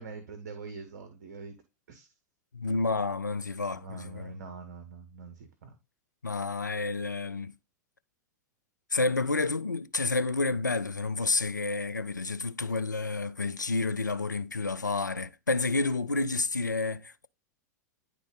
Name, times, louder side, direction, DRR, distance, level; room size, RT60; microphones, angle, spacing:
voice 1, 0.0-1.6 1.9-2.1 3.7-5.8, right 4 dB, 60° right, 1.2 m, -44 dB
voice 2, 2.5-4.3 6.2-7.5 8.9-17.3, left 3 dB, 85° left, 0.5 m, -30 dB
10.0 x 3.4 x 3.7 m
figure-of-eight pair, 90°, 10 cm